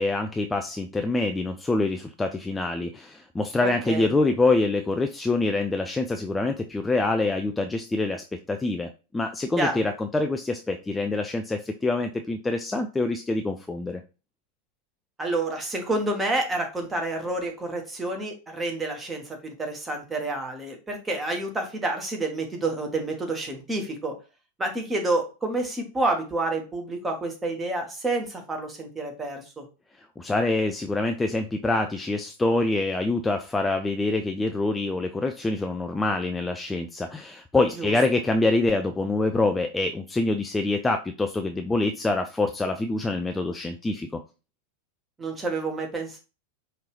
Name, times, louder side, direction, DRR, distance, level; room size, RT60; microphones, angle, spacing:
voice 1, 0.0-14.0 30.0-44.2, left 2 dB, 10° left, 6 dB, 0.3 m, -25 dB
voice 2, 3.6-4.1 9.6-9.8 15.2-24.1 24.6-29.6 37.8-37.9 45.2-46.2, right 2 dB, 15° right, 3 dB, 1.2 m, -29 dB
5.2 x 2.8 x 3.1 m, 0.31 s
figure-of-eight pair, 90°, 0 cm